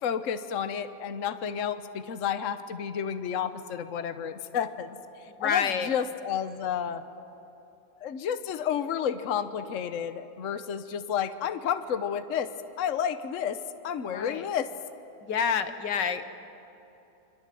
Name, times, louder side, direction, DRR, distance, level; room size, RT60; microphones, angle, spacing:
voice 1, 0.0-5.0 5.4-7.0 8.0-12.5 12.8-13.6 13.8-14.7, left 8 dB, 55° left, 11 dB, 1.2 m, -31 dB
voice 2, 5.4-5.9 14.1-14.5 15.2-16.3, left 7 dB, 85° left, 10 dB, 1.8 m, -28 dB
26.5 x 25.5 x 7.7 m, 3.0 s
omnidirectional pair, 1.8 m